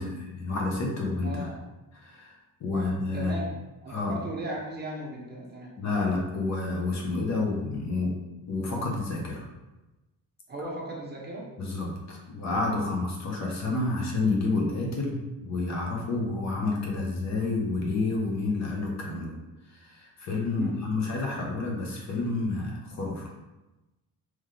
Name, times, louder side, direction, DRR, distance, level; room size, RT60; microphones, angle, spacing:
voice 1, 0.0-1.5 2.0-2.3 2.6-3.4 3.9-4.2 5.8-8.1 8.5-9.5 11.6-19.3 19.7-23.3, left 3 dB, 45° left, -1 dB, 1.0 m, -29 dB
voice 2, 1.2-1.6 2.7-3.5 3.8-5.7 10.5-11.5 20.5-20.8, right 1 dB, 25° right, -2 dB, 0.8 m, -37 dB
3.9 x 3.1 x 3.2 m, 1.0 s
cardioid pair, 135°, 36 cm